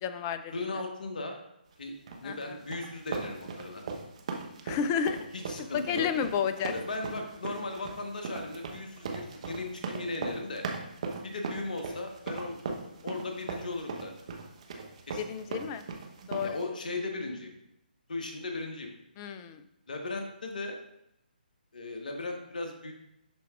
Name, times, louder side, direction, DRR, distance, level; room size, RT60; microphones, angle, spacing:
voice 1, 0.0-0.7 2.2-2.6 4.6-5.2 5.7-6.7 15.2-15.8 16.3-16.6 19.2-19.6, left 7 dB, 20° left, 11 dB, 0.4 m, -31 dB
voice 2, 0.5-1.4 1.8-1.9 2.2-3.8 5.3-6.1 6.7-10.7 11.2-14.1 15.1-15.2 16.4-17.5 18.1-18.9 19.9-20.8 21.7-22.9, left 2 dB, 55° left, 3 dB, 1.1 m, -37 dB
sound 1, 2.1-16.6, right 4 dB, 40° right, 0.9 m, -38 dB
11.0 x 4.5 x 2.4 m, 0.82 s
figure-of-eight pair, 140°, 5 cm